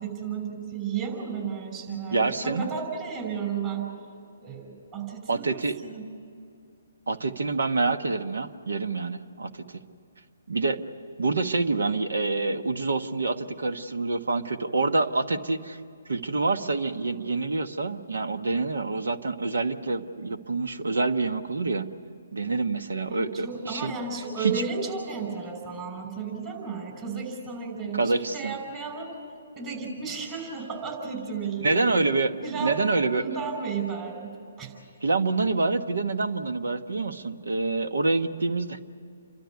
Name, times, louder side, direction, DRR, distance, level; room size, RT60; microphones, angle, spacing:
voice 1, 0.0-3.9 4.4-6.0 23.1-29.1 29.6-32.0 32.4-34.3 34.6-34.7, right 5 dB, 25° right, 2 dB, 5.8 m, -33 dB
voice 2, 2.1-2.6 5.3-5.8 7.1-9.8 10.5-10.8 11.2-15.8 16.1-21.9 22.3-23.9 24.4-24.5 27.9-28.5 31.6-33.2 35.0-38.8, right 3 dB, 80° right, 9 dB, 1.2 m, -27 dB
29.0 x 13.0 x 9.5 m, 2.5 s
hypercardioid pair, 140°, 0 cm